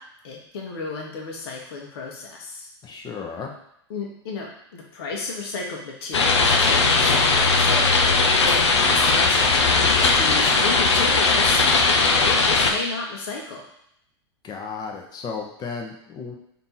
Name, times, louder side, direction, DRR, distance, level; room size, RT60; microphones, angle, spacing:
voice 1, 0.2-2.7 3.9-7.9 8.4-11.6 12.1-13.6, left 3 dB, 60° left, -1 dB, 1.2 m, -32 dB
voice 2, 2.8-3.5 14.4-16.4, left 5 dB, 30° left, 1 dB, 0.9 m, -34 dB
sound 1, 6.1-12.7, left 3 dB, 85° left, 0.6 m, -18 dB
3.4 x 2.9 x 4.2 m, 0.75 s
hypercardioid pair, 95°, 14 cm